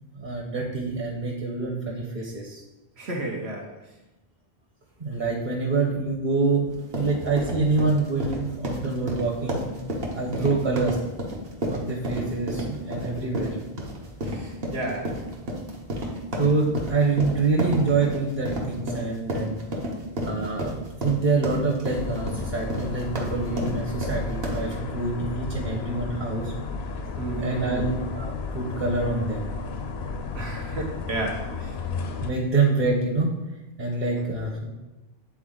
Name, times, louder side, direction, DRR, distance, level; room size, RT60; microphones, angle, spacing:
voice 1, 0.1-2.6 5.0-6.7 6.9-9.6 10.1-11.0 11.7-13.6 16.4-19.6 20.2-26.5 27.4-29.5 32.2-33.3 33.8-34.7, right 3 dB, 45° right, -3 dB, 1.2 m, -26 dB
voice 2, 3.0-3.8 10.4-10.6 14.2-15.2 27.2-27.9 30.3-31.8, right 2 dB, 85° right, 0 dB, 1.5 m, -32 dB
sound 1, 6.7-24.8, equal, 65° right, 1.3 m, -32 dB
sound 2, 21.9-32.3, left 4 dB, 75° left, 0.8 m, -33 dB
9.0 x 4.0 x 3.8 m, 1.0 s
omnidirectional pair, 1.1 m